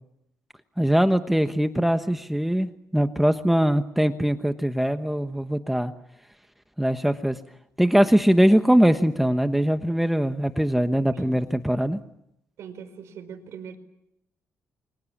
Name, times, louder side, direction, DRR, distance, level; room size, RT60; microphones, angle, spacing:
voice 1, 0.8-5.9 6.8-7.4 7.8-12.0, equal, 5° right, 8 dB, 1.1 m, -21 dB
voice 2, 12.6-13.8, right 7 dB, 65° right, 9 dB, 5.0 m, -41 dB
29.5 x 24.5 x 7.3 m, 0.81 s
cardioid pair, 120°, 5 cm